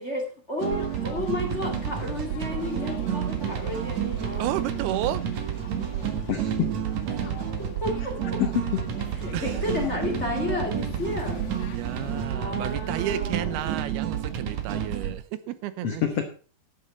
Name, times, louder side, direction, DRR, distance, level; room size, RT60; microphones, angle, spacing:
voice 1, 0.0-4.5 7.1-8.1 9.2-11.4 12.3-13.7 16.0-16.2, left 2 dB, 25° left, 2 dB, 1.6 m, -32 dB
sound 1, 0.6-12.2, left 7 dB, 65° left, 2.4 m, -43 dB
sound 2, 0.6-15.2, right 9 dB, 55° right, 2.4 m, -30 dB
voice 2, 4.4-5.2 9.3-9.7 11.7-16.0, right 13 dB, 80° right, 14 dB, 2.7 m, -32 dB
voice 3, 5.9-6.7 8.4-8.8 15.0-15.1 15.8-16.2, left 10 dB, 80° left, 7 dB, 1.3 m, -27 dB
12.5 x 8.8 x 5.3 m, 0.39 s
omnidirectional pair, 4.6 m